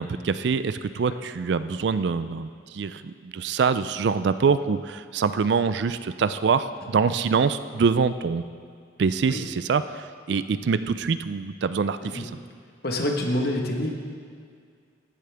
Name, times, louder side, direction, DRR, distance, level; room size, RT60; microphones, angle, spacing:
voice 1, 0.0-2.5 2.7-8.4 9.0-12.3, right 5 dB, 65° right, 13 dB, 0.4 m, -25 dB
voice 2, 12.8-14.0, left 1 dB, 55° left, 2 dB, 1.3 m, -26 dB
15.0 x 10.0 x 3.5 m, 2.1 s
head